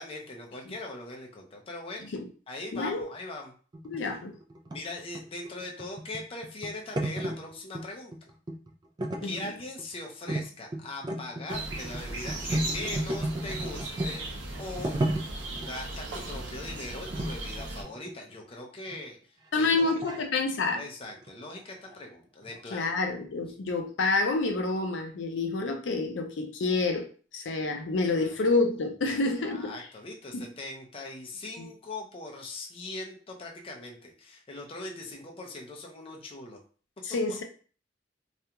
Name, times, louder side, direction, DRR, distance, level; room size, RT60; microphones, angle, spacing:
voice 1, 0.0-2.1 2.5-3.5 4.0-4.1 4.7-8.1 9.2-14.2 14.6-15.0 15.6-19.2 19.5-19.9 20.8-22.9 28.1-28.4 29.1-36.6, left 2 dB, 30° left, 1 dB, 0.5 m, -40 dB
voice 2, 2.7-3.1 3.8-4.3 9.2-9.3 19.5-20.8 22.7-27.0 27.3-29.7 30.3-30.4 31.6-31.7 37.0-37.4, left 3 dB, 85° left, 4 dB, 0.5 m, -28 dB
sound 1, 3.7-7.9 8.1-8.7 9.0-10.0 10.3-10.5 10.7-14.2 14.6-15.7 16.3-16.5 17.1-18.3 18.9-19.0 19.6-20.2 21.1-21.3 21.6-21.7 21.9-22.0 22.4-22.6, right 1 dB, 25° right, 0.3 m, -33 dB
sound 2, 11.5-17.8, right 2 dB, 85° right, 0.6 m, -37 dB
2.4 x 2.2 x 2.8 m, 0.40 s
head